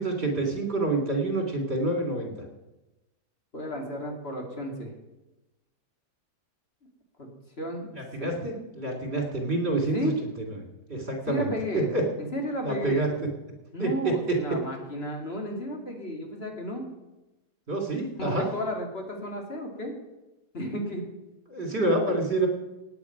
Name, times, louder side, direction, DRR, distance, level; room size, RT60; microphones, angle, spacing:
voice 1, 0.0-2.3 8.0-10.3 10.9-12.0 12.6-13.1 13.8-14.4 17.7-18.5 21.5-22.5, right 2 dB, 40° right, 2 dB, 3.2 m, -27 dB
voice 2, 3.5-4.9 7.2-7.3 7.6-7.9 8.2-8.4 9.9-10.1 11.3-11.9 12.2-13.0 13.7-16.8 17.9-19.9 20.5-21.0, equal, 35° left, 1 dB, 2.7 m, -33 dB
17.0 x 9.6 x 5.9 m, 1.0 s
omnidirectional pair, 1.8 m